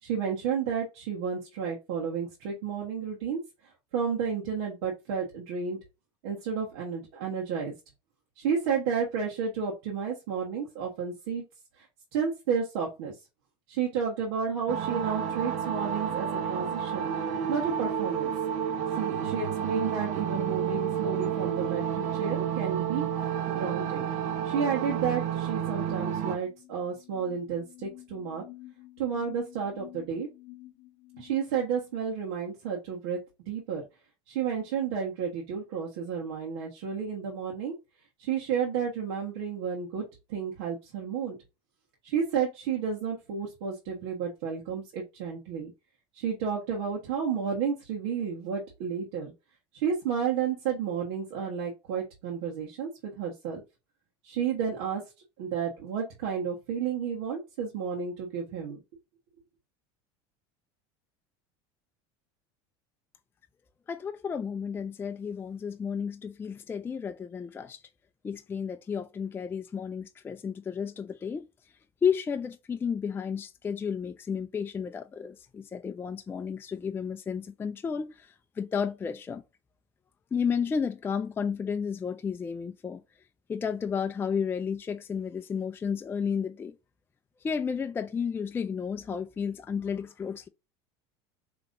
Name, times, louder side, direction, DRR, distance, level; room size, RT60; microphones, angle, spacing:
voice 1, 0.0-3.4 3.9-5.8 6.2-7.7 8.4-11.4 11.8-11.9 12.1-13.1 13.7-17.1 17.5-18.3 19.0-23.1 23.5-24.0 24.4-28.4 29.0-30.3 31.2-33.2 33.5-33.8 34.3-37.7 38.2-41.4 42.0-45.7 46.1-49.3 49.7-53.6 54.2-55.0 55.4-58.8, right 6 dB, 80° right, 1.2 m, -31 dB
sound 1, 14.7-26.4, right 8 dB, 55° right, 0.8 m, -30 dB
sound 2, 26.3-32.0, left 17 dB, 60° left, 0.7 m, -50 dB
voice 2, 63.9-67.8 68.2-71.5 72.0-79.4 80.3-83.0 83.5-86.7 87.4-90.5, left 6 dB, 15° left, 0.4 m, -32 dB
5.2 x 2.9 x 2.6 m
supercardioid pair, 115°, 13 cm